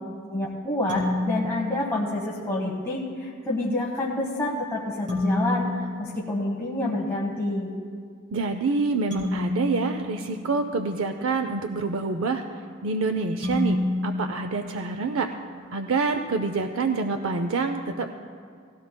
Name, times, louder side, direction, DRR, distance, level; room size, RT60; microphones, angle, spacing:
voice 1, 0.3-7.7, left 1 dB, 15° left, -5 dB, 1.1 m, -28 dB
sound 1, 0.9-2.6 5.1-7.1 9.1-11.2 13.4-15.5, left 2 dB, 40° right, 3.5 m, -30 dB
voice 2, 8.3-12.4 12.8-15.3 15.7-18.1, right 4 dB, 80° right, 7 dB, 0.5 m, -26 dB
18.0 x 16.0 x 2.2 m, 2.2 s
head